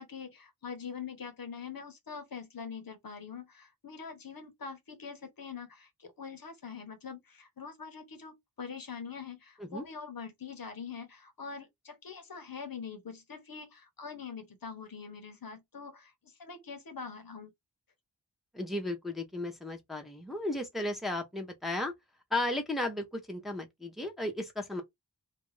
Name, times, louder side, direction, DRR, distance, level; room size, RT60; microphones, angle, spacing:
voice 1, 0.0-17.5, left 6 dB, 55° left, 0.8 m, -44 dB
voice 2, 18.5-21.9 22.3-24.8, left 1 dB, ahead, 0.7 m, -34 dB
2.5 x 2.2 x 3.1 m
wide cardioid pair, 65°, 42 cm